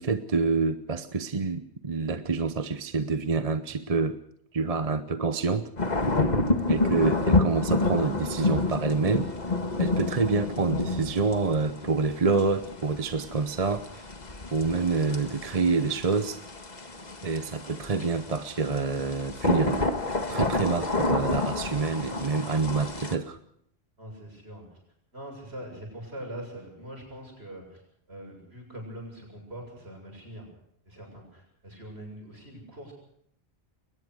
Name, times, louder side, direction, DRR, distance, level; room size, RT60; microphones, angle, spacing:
voice 1, 0.0-4.2 4.5-5.7 6.7-9.3 9.8-14.1 14.5-16.4 17.2-19.9 20.3-23.4, right 4 dB, 35° right, 11 dB, 1.0 m, -27 dB
sound 1, 5.8-23.1, left 3 dB, 40° left, 2.0 m, -29 dB
voice 2, 24.0-24.6 25.1-27.8 28.1-30.5 30.8-32.9, right 1 dB, 70° right, 2 dB, 7.7 m, -42 dB
22.0 x 19.5 x 6.5 m, 0.70 s
omnidirectional pair, 1.1 m